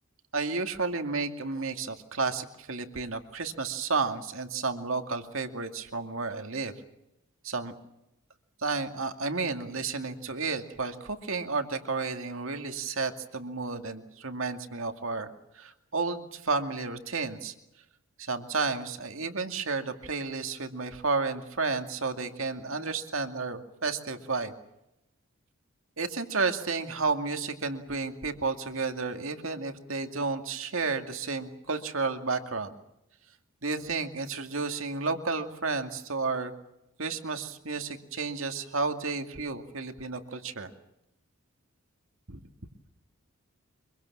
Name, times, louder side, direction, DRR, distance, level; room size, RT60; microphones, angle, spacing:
voice 1, 0.3-6.7 7.4-7.7 8.6-17.5 18.2-24.5 26.0-32.7 33.6-36.5 37.0-40.7 42.3-42.4, right 4 dB, 65° right, 6 dB, 2.3 m, -32 dB
25.0 x 23.5 x 7.3 m, 0.86 s
head